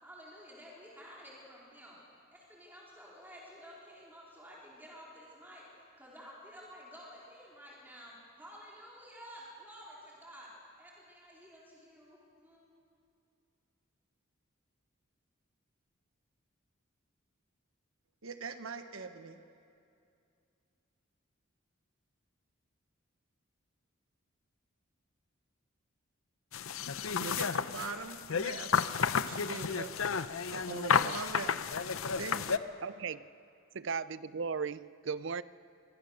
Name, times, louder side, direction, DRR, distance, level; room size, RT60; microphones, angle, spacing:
voice 1, 0.0-2.0 2.3-10.5 10.8-12.6, equal, 10° right, 4.2 m, -52 dB
voice 2, 18.2-19.4 27.2-29.9 30.5-31.6 32.1-32.6, right 4 dB, 80° right, 1.2 m, -41 dB
sound 1, 26.5-32.6, left 6 dB, 80° left, 0.7 m, -32 dB
voice 3, 32.8-33.3 33.7-35.4, right 5 dB, 60° right, 0.5 m, -36 dB
24.0 x 23.5 x 6.5 m
head